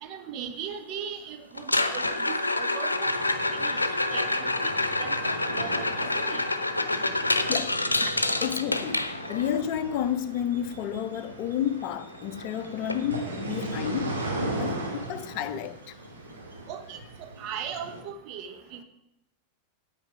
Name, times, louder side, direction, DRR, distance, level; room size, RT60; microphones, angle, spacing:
voice 1, 0.0-4.7 5.0-6.4 16.7-17.0 17.4-18.8, right 8 dB, 40° right, 1.0 m, -39 dB
sound 1, 1.6-9.5 11.8-11.9 12.1-12.5 12.9-13.0 13.6-13.7 15.6-15.7, left 2 dB, 85° left, 0.7 m, -27 dB
sound 2, 3.0-18.0, right 1 dB, 75° right, 2.2 m, -38 dB
voice 2, 7.5-8.0 8.4-14.2 14.6-16.0, left 9 dB, 40° left, 0.6 m, -31 dB
9.2 x 9.1 x 5.0 m
figure-of-eight pair, 90°, 0 cm